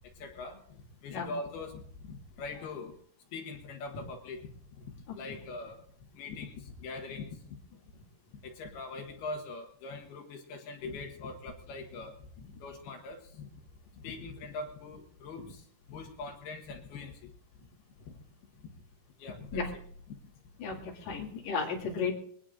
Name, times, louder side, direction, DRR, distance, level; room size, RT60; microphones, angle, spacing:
voice 1, 0.2-3.0 3.3-4.4 5.1-5.8 6.1-7.6 8.4-13.5 14.0-15.6 15.9-17.3 19.2-19.7, left 3 dB, 70° left, 3 dB, 3.0 m, -42 dB
voice 2, 20.6-22.1, left 5 dB, 45° left, -1 dB, 3.0 m, -33 dB
22.0 x 18.5 x 2.6 m, 0.63 s
omnidirectional pair, 5.3 m